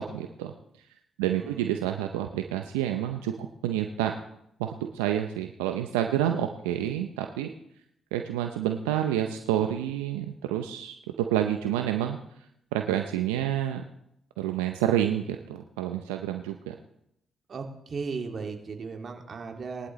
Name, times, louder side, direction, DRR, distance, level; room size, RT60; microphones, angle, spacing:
voice 1, 0.1-0.5 1.2-4.1 4.6-7.5 8.1-12.2 12.7-13.8 14.4-16.7, right 11 dB, 90° right, 5 dB, 0.6 m, -28 dB
voice 2, 1.2-1.7 17.5-19.9, right 4 dB, 55° right, 3 dB, 2.2 m, -36 dB
20.0 x 11.0 x 3.1 m, 0.77 s
hypercardioid pair, 45°, 0 cm